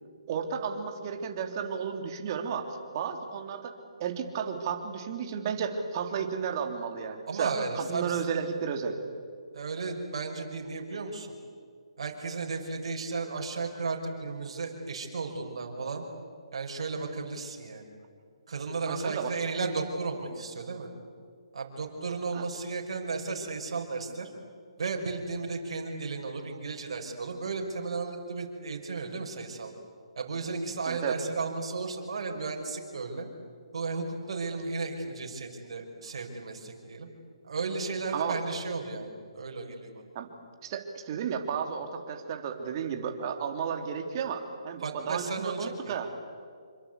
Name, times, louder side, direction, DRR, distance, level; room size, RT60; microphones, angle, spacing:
voice 1, 0.3-3.7 4.0-9.0 18.9-19.3 22.3-22.4 30.9-31.2 38.1-38.4 40.1-40.3 40.6-46.1, right 7 dB, 40° right, 5 dB, 3.3 m, -33 dB
voice 2, 7.3-8.2 9.5-11.3 12.0-16.1 16.5-17.9 18.5-20.9 21.5-24.3 24.8-29.7 30.2-33.3 33.7-37.1 37.5-39.9 44.8-46.0, right 4 dB, 65° right, 2 dB, 5.8 m, -34 dB
28.0 x 24.5 x 8.3 m, 2.1 s
hypercardioid pair, 150°, 3 cm